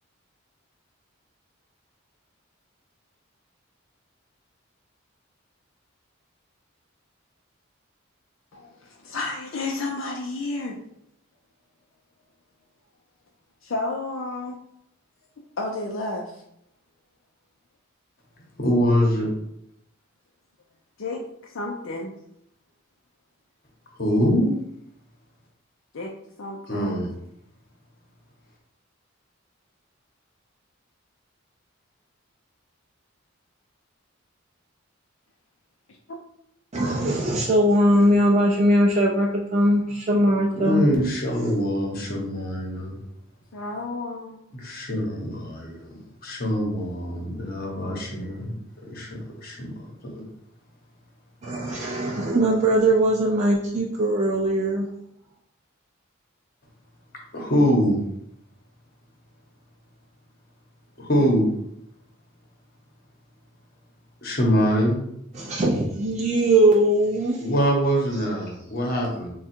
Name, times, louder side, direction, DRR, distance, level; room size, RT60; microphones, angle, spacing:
voice 1, 8.5-10.8 13.6-14.6 15.6-16.4 21.0-22.1 25.9-26.1 26.4-27.0 43.5-44.5, left 2 dB, 70° left, 0 dB, 0.5 m, -31 dB
voice 2, 18.6-19.3 24.0-24.5 26.7-27.1 40.5-43.0 44.5-48.5 48.9-49.7 50.1-50.3 57.3-58.0 61.0-61.5 64.2-65.0 67.4-69.3, equal, 45° left, -1 dB, 1.0 m, -24 dB
voice 3, 36.7-40.8 51.4-54.9 65.3-67.4, right 1 dB, 35° right, -4 dB, 0.4 m, -20 dB
3.5 x 2.3 x 4.3 m, 0.75 s
head